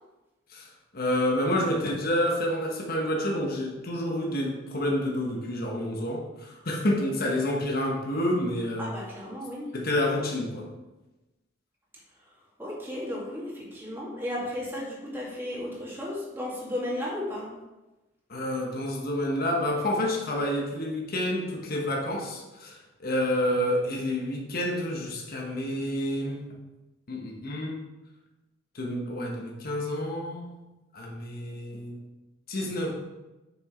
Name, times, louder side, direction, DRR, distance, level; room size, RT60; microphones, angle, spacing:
voice 1, 0.5-8.9 9.7-10.7 18.3-26.5 27.1-27.8 28.7-30.6 30.9-32.0 32.5-32.9, left 1 dB, 50° left, -1 dB, 1.1 m, -29 dB
voice 2, 8.8-9.7 12.6-17.5, left 1 dB, 10° right, -5 dB, 2.1 m, -34 dB
6.1 x 5.8 x 4.4 m, 1.1 s
head